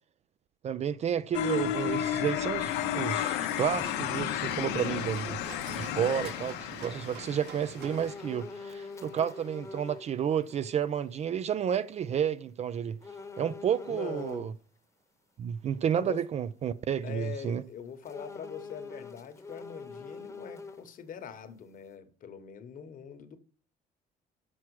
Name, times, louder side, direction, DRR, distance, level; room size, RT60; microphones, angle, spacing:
voice 1, 0.6-5.4 5.7-6.5 6.8-13.0 13.4-14.5 15.4-17.6, right 8 dB, 40° right, 0.4 m, -31 dB
sound 1, 1.3-8.3, left 11 dB, 90° left, 0.6 m, -32 dB
sound 2, 2.5-8.1, right 10 dB, 85° right, 0.6 m, -47 dB
voice 2, 5.9-6.3 13.9-14.5 15.9-16.2 17.0-23.4, left 7 dB, 55° left, 1.1 m, -43 dB
sound 3, 7.8-10.1 10.5-10.6 13.0-14.4 18.0-21.1 21.5-21.6, left 4 dB, 15° left, 1.0 m, -44 dB
6.2 x 5.8 x 4.7 m
cardioid pair, 110°, 17 cm